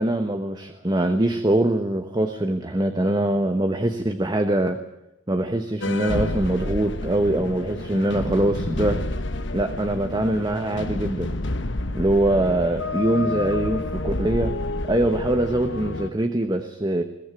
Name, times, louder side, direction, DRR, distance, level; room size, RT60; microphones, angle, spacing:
voice 1, 0.0-4.8 5.3-9.0 9.5-11.3 11.9-14.6 14.8-17.0, right 1 dB, 20° right, 7 dB, 1.2 m, -23 dB
sound 1, 5.8-16.1, left 2 dB, 60° left, 1.3 m, -29 dB
22.0 x 17.0 x 9.1 m, 0.89 s
head